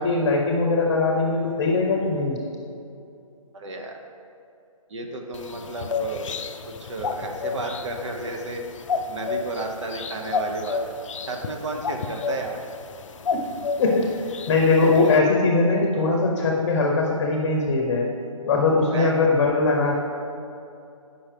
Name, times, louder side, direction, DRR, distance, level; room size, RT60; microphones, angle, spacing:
voice 1, 0.0-2.4 13.3-13.4 13.8-14.1 14.5-18.1 18.5-19.9, left 3 dB, 35° left, 0 dB, 0.8 m, -21 dB
voice 2, 3.5-4.0 4.9-6.3 6.7-8.6 9.1-10.9 11.3-12.6 18.9-19.3, right 2 dB, 55° right, 3 dB, 0.9 m, -32 dB
sound 1, 5.3-15.2, left 4 dB, 60° left, 0.5 m, -31 dB
8.7 x 5.4 x 3.4 m, 2.6 s
hypercardioid pair, 150°, 18 cm